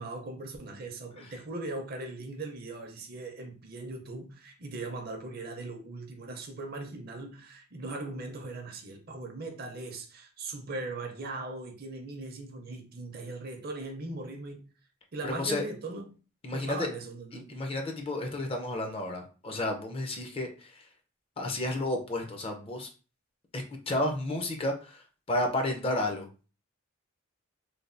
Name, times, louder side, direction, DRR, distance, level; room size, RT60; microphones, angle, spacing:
voice 1, 0.0-14.7 15.1-16.1 16.5-17.6, right 2 dB, 45° right, 0.6 m, -39 dB
voice 2, 15.2-15.6 16.4-16.9 17.3-20.9 21.4-22.9 23.5-25.0 25.3-26.3, left 1 dB, 25° left, 0.4 m, -32 dB
3.2 x 2.2 x 2.5 m
head